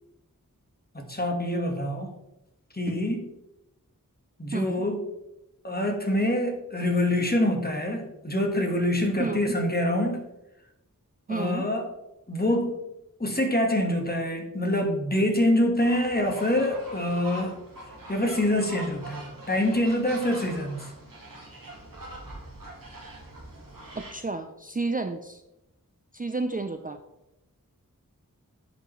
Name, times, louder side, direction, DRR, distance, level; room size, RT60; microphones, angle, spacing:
voice 1, 0.9-2.1 2.7-3.2 4.4-5.0 5.6-10.3 11.3-11.9 12.3-12.8 13.2-17.6 18.1-20.9, left 1 dB, 30° left, 3 dB, 1.5 m, -25 dB
voice 2, 4.5-4.8 9.2-9.6 11.3-11.7 23.9-25.4 26.1-27.0, right 3 dB, 25° right, 7 dB, 0.5 m, -31 dB
sound 1, 15.7-24.1, right 2 dB, 75° right, 1.9 m, -43 dB
10.0 x 5.2 x 3.1 m, 0.89 s
wide cardioid pair, 50°, 34 cm